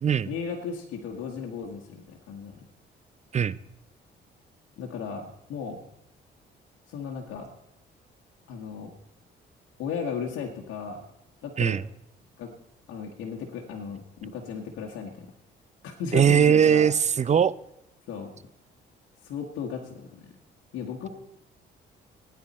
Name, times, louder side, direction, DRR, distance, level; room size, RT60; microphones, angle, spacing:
voice 1, 0.2-2.6 4.8-5.8 6.9-7.5 8.5-8.9 9.8-11.0 11.4-11.8 12.4-12.5 12.9-15.3 15.8-16.9 18.1-18.3 19.2-20.3 20.7-21.1, left 6 dB, 90° left, -1 dB, 1.6 m, -35 dB
voice 2, 16.1-17.5, right 8 dB, 35° right, 18 dB, 0.5 m, -20 dB
17.0 x 9.7 x 4.3 m, 0.83 s
cardioid pair, 90°, 20 cm